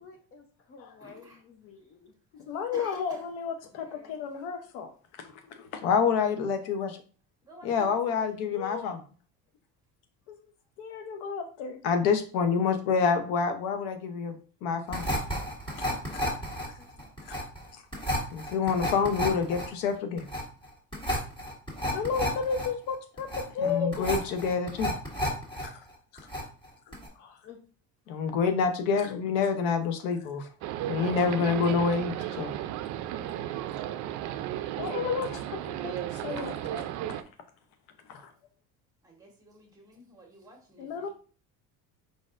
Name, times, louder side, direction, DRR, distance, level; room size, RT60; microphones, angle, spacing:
voice 1, 0.0-2.1 16.8-17.1 26.9-27.0 27.4-27.6, left 6 dB, 40° left, 4 dB, 0.8 m, -52 dB
voice 2, 1.0-1.4 2.7-3.2 3.6-4.2 7.5-7.9 8.2-8.3 39.0-41.1, right 2 dB, 10° right, 0 dB, 1.6 m, -51 dB
voice 3, 2.5-4.9 5.5-7.0 7.6-9.0 10.8-15.1 16.2-16.3 17.3-17.4 18.3-20.3 21.9-24.9 25.6-25.7 27.2-27.3 28.1-30.5 30.9-32.5 34.8-36.9 38.1-38.3 40.8-41.1, left 5 dB, 90° left, 8 dB, 0.8 m, -28 dB
sound 1, 14.9-25.7 25.9-26.7 26.9-27.1, equal, 15° left, 1.8 m, -32 dB
sound 2, 30.6-37.2, right 12 dB, 60° right, 0.5 m, -34 dB
4.9 x 4.1 x 2.5 m, 0.40 s
cardioid pair, 125°, 33 cm